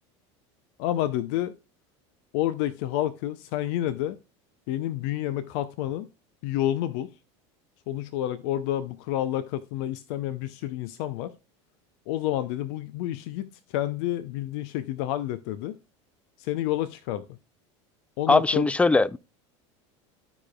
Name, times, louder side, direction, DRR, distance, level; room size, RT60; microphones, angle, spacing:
voice 1, 0.8-1.5 2.3-4.2 4.7-6.1 6.4-7.1 7.9-11.3 12.1-15.8 16.4-17.2 18.2-18.7, left 13 dB, 70° left, 0.5 m, -29 dB
voice 2, 18.3-19.2, left 3 dB, 10° left, 0.3 m, -20 dB
14.0 x 4.9 x 2.2 m
supercardioid pair, 100°, 15 cm